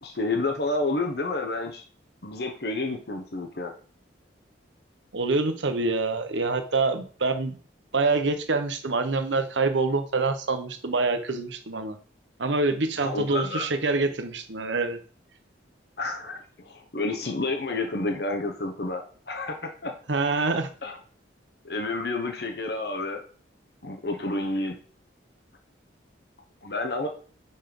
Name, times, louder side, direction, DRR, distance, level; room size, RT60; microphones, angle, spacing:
voice 1, 0.0-1.8 2.2-3.7 13.0-13.6 16.0-19.6 19.8-19.9 20.8-21.0 21.6-23.2 23.8-24.8 26.6-27.1, left 2 dB, 55° left, 3 dB, 1.1 m, -30 dB
voice 2, 5.1-7.6 7.9-11.9 12.4-15.0 20.1-20.7, right 3 dB, 80° right, 8 dB, 1.0 m, -26 dB
5.8 x 5.4 x 5.3 m, 0.43 s
head